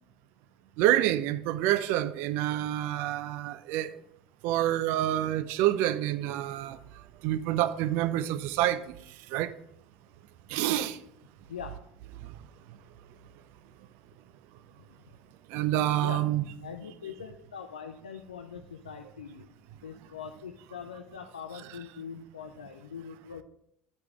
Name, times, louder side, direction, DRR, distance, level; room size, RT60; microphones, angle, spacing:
voice 1, 0.8-3.9 4.4-6.8 7.2-8.8 9.3-9.5 10.5-11.0 15.5-16.4, right 13 dB, 60° right, 0.4 m, -27 dB
voice 2, 16.6-19.5 19.8-23.4, left 6 dB, 90° left, 0.4 m, -42 dB
8.4 x 4.9 x 3.5 m
hypercardioid pair, 70°, 4 cm